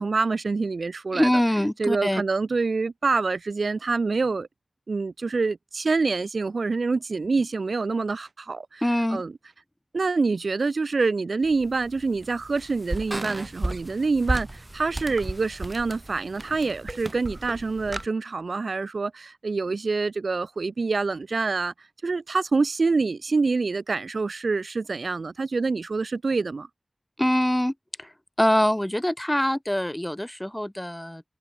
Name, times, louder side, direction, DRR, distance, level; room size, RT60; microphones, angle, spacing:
voice 1, 0.0-1.4 1.8-4.5 4.9-8.8 9.1-9.3 9.9-21.7 22.0-26.7, right 4 dB, 85° right, 1.3 m, -26 dB
voice 2, 1.1-2.2 8.8-9.2 27.2-27.7 28.0-28.1 28.4-31.2, left 1 dB, 10° left, 0.7 m, -24 dB
sound 1, 11.4-18.1, right 1 dB, 30° right, 1.4 m, -34 dB
wide cardioid pair, 65°, 0 cm